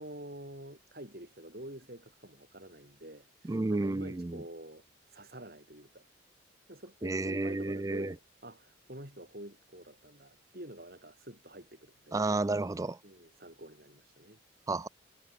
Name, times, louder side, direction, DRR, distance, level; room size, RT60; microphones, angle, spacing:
voice 1, 0.0-4.8 5.1-6.1 6.7-12.2 13.0-14.4, right 1 dB, 50° right, 7.7 m, -47 dB
voice 2, 3.4-4.4 7.0-8.1 12.1-13.0 14.7-14.9, right 2 dB, 15° right, 0.3 m, -31 dB
head